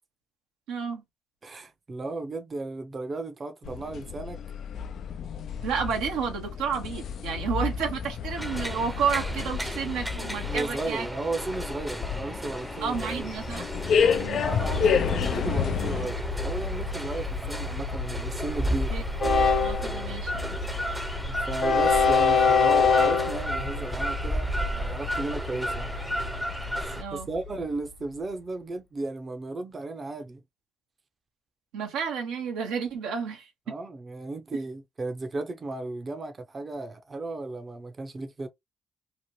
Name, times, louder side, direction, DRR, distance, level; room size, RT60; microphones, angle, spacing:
voice 1, 0.7-1.0 5.6-11.1 12.8-13.6 14.1-14.6 18.9-19.0 19.6-20.6 27.0-27.3 31.7-33.7, right 6 dB, 85° right, 0.7 m, -31 dB
voice 2, 1.4-4.4 10.4-13.3 14.3-19.0 21.3-25.9 26.8-30.4 33.7-38.5, right 2 dB, 40° right, 0.6 m, -35 dB
sound 1, 3.6-16.1, left 7 dB, 65° left, 0.3 m, -30 dB
sound 2, 8.4-27.0, equal, 5° right, 0.6 m, -34 dB
Train, 14.6-27.6, left 5 dB, 50° left, 1.0 m, -27 dB
2.9 x 2.1 x 3.0 m
supercardioid pair, 55°, 0 cm